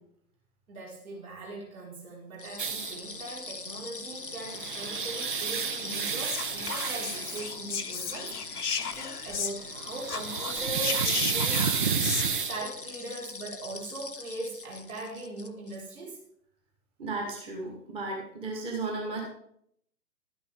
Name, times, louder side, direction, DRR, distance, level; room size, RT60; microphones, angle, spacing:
voice 1, 0.7-16.2, right 2 dB, 60° right, -4 dB, 5.1 m, -40 dB
sound 1, 2.4-15.8, left 3 dB, 35° left, 0.4 m, -42 dB
sound 2, 2.6-3.0 4.2-7.5 9.8-12.6, right 6 dB, 30° right, 0.7 m, -30 dB
Whispering, 6.2-9.8 10.0-12.3, left 6 dB, 65° left, 0.9 m, -35 dB
voice 2, 17.0-19.2, right 3 dB, 10° right, 0 dB, 1.5 m, -34 dB
12.5 x 10.0 x 3.7 m, 0.69 s
figure-of-eight pair, 125°, 49 cm